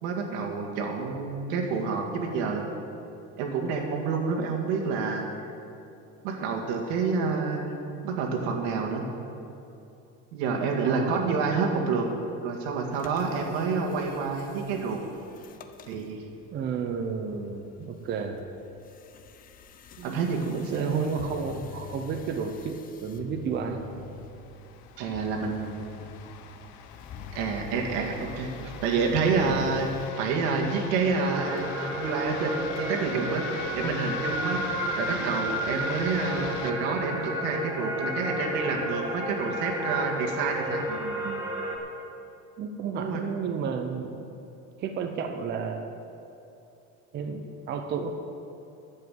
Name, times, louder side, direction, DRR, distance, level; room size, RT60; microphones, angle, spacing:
voice 1, 0.0-2.6 3.4-5.3 6.2-9.1 10.3-12.1 12.4-15.0 15.9-16.2 20.0-21.1 25.0-25.8 27.3-29.9 30.2-31.7 32.0-40.8 42.9-43.3, right 4 dB, 80° right, 1 dB, 1.9 m, -28 dB
voice 2, 10.8-11.3 16.5-18.4 20.0-20.2 20.5-23.8 27.8-28.1 40.9-41.4 42.6-44.3 44.8-45.9 47.1-48.2, right 6 dB, 35° right, 5 dB, 0.7 m, -32 dB
sound 1, 12.9-30.1, left 6 dB, 30° left, 0.5 m, -46 dB
sound 2, 24.2-36.7, left 8 dB, 65° left, 0.9 m, -43 dB
sound 3, 31.3-41.8, equal, 10° right, 1.4 m, -32 dB
11.0 x 7.6 x 7.7 m, 2.8 s
cardioid pair, 155°, 31 cm